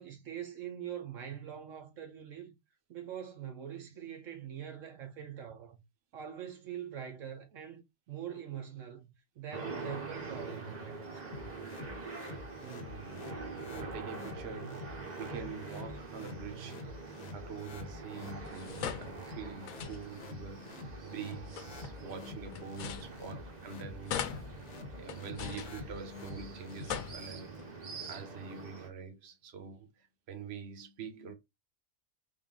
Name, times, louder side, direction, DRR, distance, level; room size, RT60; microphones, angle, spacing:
voice 1, 0.0-2.6 2.9-5.8 6.1-11.1, right 9 dB, 75° right, 1.1 m, -43 dB
sound 1, 9.5-28.9, right 4 dB, 35° right, 0.9 m, -45 dB
sound 2, 11.3-27.3, left 5 dB, 65° left, 1.0 m, -48 dB
voice 2, 12.6-13.4 13.7-16.8 17.3-24.4 25.0-27.5 28.1-31.3, right 6 dB, 55° right, 1.0 m, -45 dB
sound 3, 18.4-20.3 21.3-23.7 24.1-26.3 26.7-27.7, left 9 dB, 85° left, 1.0 m, -42 dB
3.6 x 2.6 x 3.6 m
omnidirectional pair, 1.4 m